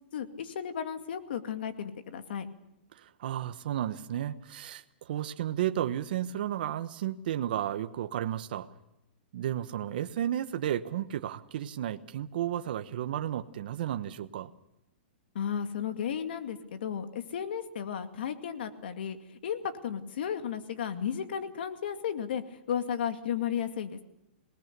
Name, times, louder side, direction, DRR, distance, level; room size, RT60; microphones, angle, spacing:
voice 1, 0.1-2.5 15.3-24.0, left 8 dB, 65° left, 7 dB, 2.3 m, -34 dB
voice 2, 2.9-8.7 9.3-14.5, right 11 dB, 55° right, 9 dB, 1.1 m, -33 dB
26.5 x 19.5 x 6.9 m, 0.86 s
hypercardioid pair, 160°, 6 cm